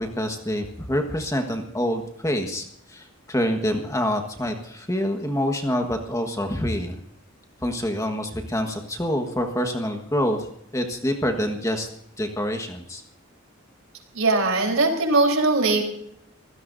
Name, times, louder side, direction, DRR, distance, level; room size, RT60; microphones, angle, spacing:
voice 1, 0.0-7.0 7.6-10.5 10.7-11.9 12.2-13.0, equal, 15° left, 4 dB, 1.5 m, -26 dB
voice 2, 14.1-15.8, right 3 dB, 85° right, 3 dB, 4.0 m, -20 dB
25.5 x 16.5 x 2.7 m, 0.73 s
head